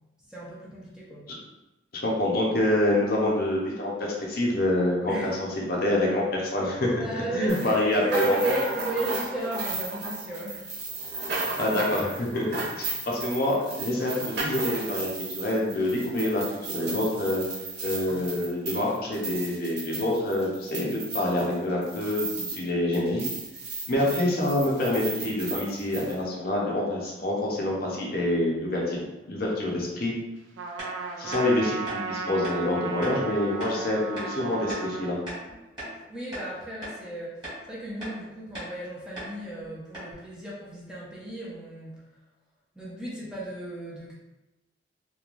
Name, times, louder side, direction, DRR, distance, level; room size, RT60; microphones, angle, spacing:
voice 1, 0.3-1.3 5.1-5.4 6.9-10.7 33.7-33.9 35.9-37.4 37.7-42.0 42.8-44.1, right 2 dB, 5° right, -6 dB, 0.5 m, -34 dB
voice 2, 2.0-8.3 11.4-17.4 17.8-23.2 23.9-29.0 29.3-30.1 31.2-35.2, left 1 dB, 50° left, -3 dB, 0.6 m, -26 dB
sound 1, 7.5-22.7 22.9-26.1, right 3 dB, 60° right, 1.1 m, -35 dB
Trumpet, 30.6-35.2, right 5 dB, 85° right, 0.3 m, -35 dB
sound 2, 30.8-30.9 31.3-31.5 31.8-32.0 32.4-32.6 33.0-33.2 33.6-33.7 34.2-34.3 34.7-34.9 35.3-36.0 36.3-36.5 36.8-37.0 37.4-37.6 38.0-38.2 38.5-38.7 39.2-39.3 39.6-39.7 39.9-40.1, equal, 25° right, 1.3 m, -38 dB
3.0 x 2.2 x 2.4 m, 1.0 s
head